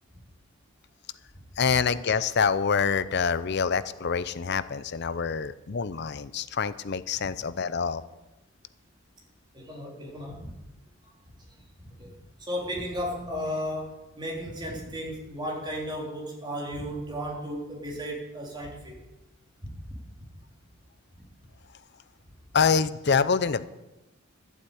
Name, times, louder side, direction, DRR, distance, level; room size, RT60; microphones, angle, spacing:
voice 1, 1.6-8.0 22.5-23.7, left 6 dB, 55° left, 15 dB, 0.6 m, -26 dB
voice 2, 9.5-10.6 11.8-12.1 12.4-19.0 19.6-20.0, equal, 20° right, -2 dB, 3.5 m, -34 dB
12.0 x 8.2 x 8.4 m, 0.99 s
head